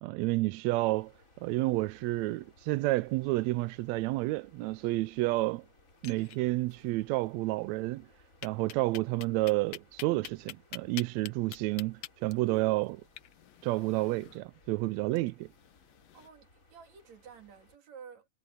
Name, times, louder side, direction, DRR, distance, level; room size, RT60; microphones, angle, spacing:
voice 1, 0.0-1.1 1.4-5.6 6.0-8.1 8.4-13.0 13.6-15.5, right 20 dB, 80° right, 1.7 m, -30 dB
sound 1, 0.8-17.8, left 2 dB, 25° left, 5.1 m, -63 dB
sound 2, 5.9-6.8 7.1-7.2 7.5-7.6 8.4-16.3, left 14 dB, 70° left, 1.7 m, -47 dB
voice 2, 16.1-18.3, right 6 dB, 65° right, 3.4 m, -51 dB
omnidirectional pair, 3.5 m